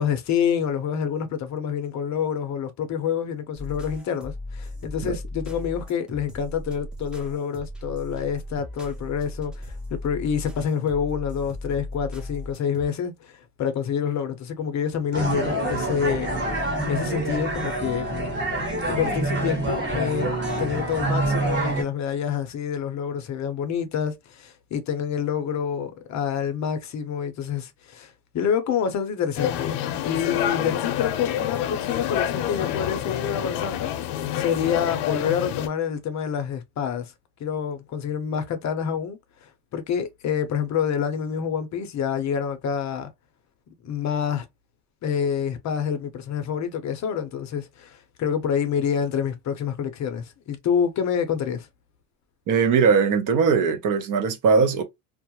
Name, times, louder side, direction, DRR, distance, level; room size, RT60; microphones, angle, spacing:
voice 1, 0.0-16.3 16.6-18.1 18.8-29.7 30.0-33.9 34.3-37.1 37.4-43.1 43.8-44.5 45.0-51.7, left 8 dB, 45° left, 0.6 m, -27 dB
sound 1, 3.6-12.9, left 1 dB, ahead, 0.5 m, -37 dB
sound 2, 15.1-21.8, right 2 dB, 25° right, 1.2 m, -26 dB
sound 3, 29.4-35.7, left 11 dB, 85° left, 0.6 m, -27 dB
voice 2, 52.5-54.8, right 5 dB, 50° right, 0.7 m, -20 dB
2.3 x 2.1 x 2.8 m
cardioid pair, 130°, 40 cm